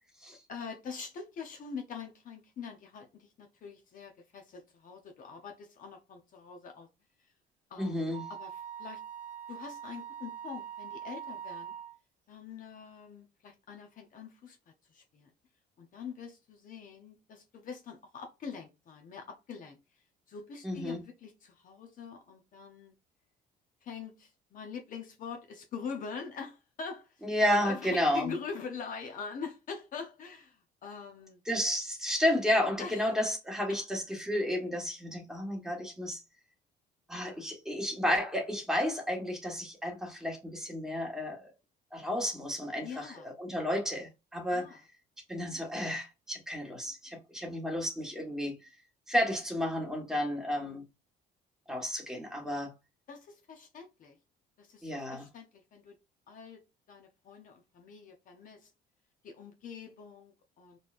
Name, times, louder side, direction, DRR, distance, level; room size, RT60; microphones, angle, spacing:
voice 1, 0.5-6.9 7.7-9.0 9.5-11.7 12.3-14.6 14.9-15.3 15.8-19.8 20.3-22.9 23.8-27.3 27.6-31.4 32.8-33.1 33.7-33.8 42.8-43.3 44.4-44.8 53.1-54.2 54.6-56.0 56.3-56.6 56.9-58.7 59.2-60.8, left 5 dB, 50° left, 0.9 m, -44 dB
voice 2, 7.8-8.2 20.6-21.0 27.2-28.3 31.5-36.2 37.1-41.5 41.9-44.8 45.3-48.6 49.1-50.8 51.7-52.7 54.8-55.3, left 1 dB, 5° right, 1.5 m, -32 dB
Wind instrument woodwind instrument, 8.1-12.0, right 9 dB, 40° right, 0.9 m, -43 dB
4.2 x 3.3 x 2.5 m
cardioid pair, 110°, 17 cm